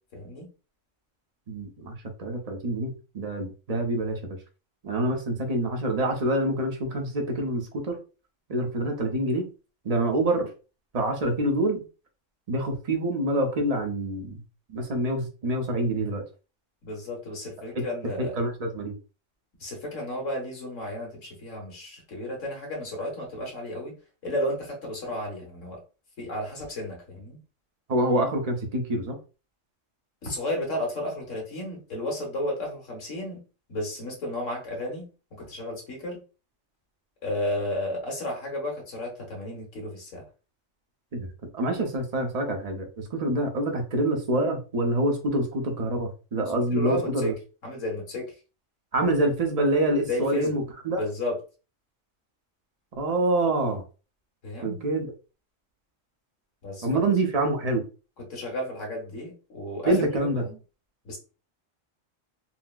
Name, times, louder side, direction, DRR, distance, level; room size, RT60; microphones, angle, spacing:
voice 1, 0.1-0.5 16.8-18.4 19.6-23.9 24.2-25.8 26.2-27.4 30.2-36.2 37.2-40.2 46.7-47.3 47.6-48.3 50.1-50.5 51.0-51.4 54.4-54.8 56.6-56.9 58.2-60.6 61.0-61.2, left 1 dB, 75° left, 0 dB, 1.5 m, -33 dB
voice 2, 1.5-4.4 4.8-8.0 8.5-9.5 9.8-10.5 10.9-11.8 12.5-14.4 14.7-16.2 17.8-17.9 18.2-18.9 27.9-29.2 41.1-41.3 41.5-47.3 48.9-51.0 53.0-53.8 54.6-55.1 56.8-57.8 59.8-60.5, right 1 dB, 40° right, 3 dB, 0.6 m, -26 dB
4.1 x 2.0 x 2.3 m, 0.33 s
omnidirectional pair, 1.3 m